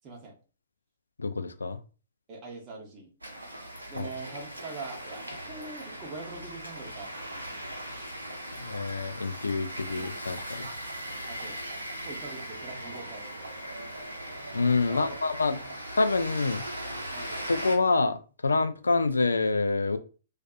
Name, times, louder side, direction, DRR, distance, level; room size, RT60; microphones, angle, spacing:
voice 1, 0.0-0.4 2.3-3.1 3.9-7.2 11.3-11.6 11.9-13.4 14.9-15.2 15.6-15.8 17.1-17.3, right 3 dB, 30° right, 0.8 m, -43 dB
voice 2, 1.2-1.8 4.0-4.1 8.6-10.7 14.5-15.6 16.0-16.6 17.5-20.0, left 3 dB, 80° left, 0.3 m, -27 dB
sound 1, 3.2-17.8, right 1 dB, 85° right, 0.7 m, -39 dB
2.5 x 2.4 x 2.3 m
figure-of-eight pair, 115°, 0 cm